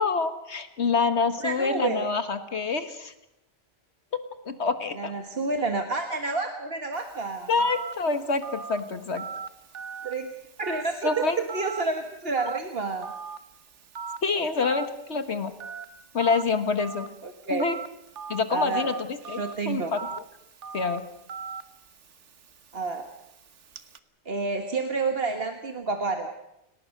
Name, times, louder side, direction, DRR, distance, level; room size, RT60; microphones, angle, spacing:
voice 1, 0.0-3.1 4.5-5.1 7.5-9.2 11.0-11.4 14.2-15.5 16.1-17.1 17.5-17.8 18.3-20.1 20.7-21.0, left 4 dB, 70° left, 9 dB, 1.7 m, -26 dB
voice 2, 1.4-2.1 5.0-7.5 10.0-10.3 10.6-13.1 17.2-17.7 18.5-19.0 19.3-19.9 22.7-23.1 24.3-26.3, right 3 dB, 55° right, 5 dB, 1.8 m, -29 dB
Telephone, 6.9-24.0, right 5 dB, 85° right, 1.6 m, -41 dB
29.5 x 18.5 x 6.5 m, 0.87 s
omnidirectional pair, 1.2 m